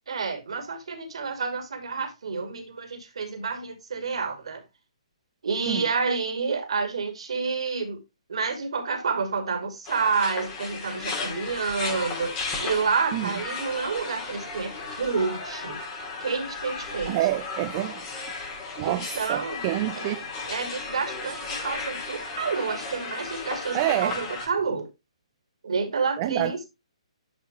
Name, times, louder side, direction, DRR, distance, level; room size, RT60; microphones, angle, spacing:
voice 1, 0.1-4.6 5.4-8.0 8.3-15.8 16.2-17.2 18.8-19.6 20.0-20.1 20.5-24.9 25.6-26.7, right 5 dB, 60° right, 2.4 m, -29 dB
sound 1, 9.9-24.5, left 3 dB, 25° left, 2.8 m, -35 dB
voice 2, 17.1-18.0 18.8-20.2 23.7-24.2 26.2-26.5, right 16 dB, 30° right, 0.6 m, -27 dB
11.5 x 4.9 x 3.1 m
figure-of-eight pair, 130°, 3 cm